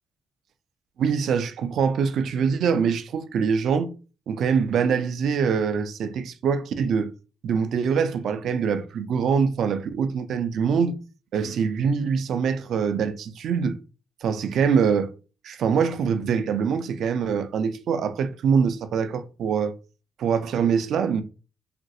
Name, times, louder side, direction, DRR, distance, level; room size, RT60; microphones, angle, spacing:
voice 1, 1.0-3.9 4.3-7.1 7.4-11.0 11.3-13.8 14.2-15.1 15.4-19.7 20.2-21.2, right 6 dB, 70° right, 0.3 m, -24 dB
3.0 x 2.5 x 2.6 m
cardioid pair, 90°, 0 cm